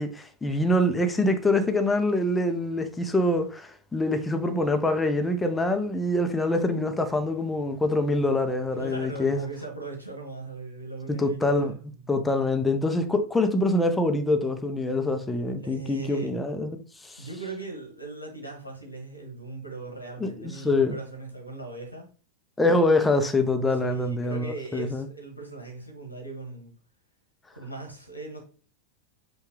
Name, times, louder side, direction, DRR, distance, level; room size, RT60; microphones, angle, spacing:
voice 1, 0.0-9.4 11.1-11.7 12.1-17.3 20.2-21.0 22.6-25.1, left 2 dB, 10° left, 0.5 m, -25 dB
voice 2, 8.6-11.8 15.6-16.3 17.2-22.1 23.7-26.7 27.5-28.4, right 3 dB, 85° right, 1.1 m, -39 dB
5.4 x 2.3 x 3.7 m
figure-of-eight pair, 90°, 0 cm